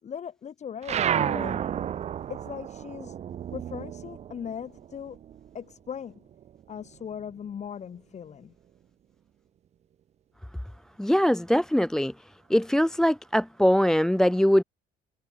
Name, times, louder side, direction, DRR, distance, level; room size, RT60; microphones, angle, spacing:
voice 1, 0.0-1.6 2.3-3.2 3.5-5.2 5.5-6.2 6.7-8.5, left 8 dB, 45° left, 2.5 m, -39 dB
sound 1, 0.8-5.7 6.0-7.5, right 10 dB, 40° right, 0.5 m, -32 dB
voice 2, 11.0-12.1 12.5-14.6, equal, 5° left, 0.6 m, -22 dB
cardioid pair, 110°, 17 cm